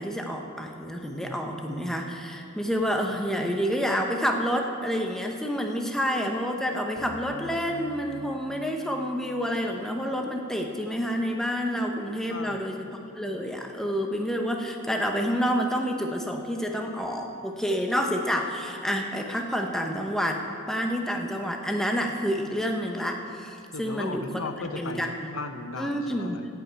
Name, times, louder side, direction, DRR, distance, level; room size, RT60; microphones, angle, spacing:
voice 1, 0.0-12.8 13.1-24.4 24.8-25.1 25.8-26.4, equal, ahead, 2 dB, 0.8 m, -28 dB
sound 1, 7.0-10.7, right 3 dB, 20° right, 1.7 m, -47 dB
voice 2, 12.1-12.6 23.7-26.5, left 3 dB, 85° left, 8 dB, 0.7 m, -37 dB
14.0 x 5.6 x 8.7 m, 2.5 s
head